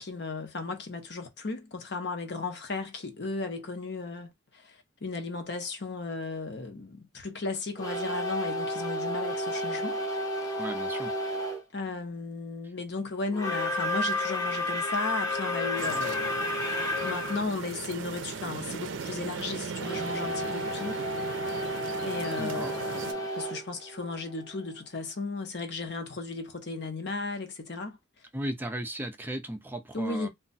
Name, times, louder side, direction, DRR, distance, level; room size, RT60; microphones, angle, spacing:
voice 1, 0.0-10.0 11.7-16.5 17.0-21.0 22.0-28.0 29.9-30.3, left 3 dB, 60° left, 0.8 m, -35 dB
sound 1, 7.8-11.6 13.3-17.5 19.8-24.6, left 1 dB, 20° left, 0.8 m, -32 dB
voice 2, 10.6-11.1 22.4-22.7 28.3-30.3, right 1 dB, 10° right, 0.4 m, -36 dB
sound 2, 15.8-23.1, right 5 dB, 70° right, 0.5 m, -38 dB
2.3 x 2.2 x 3.9 m
head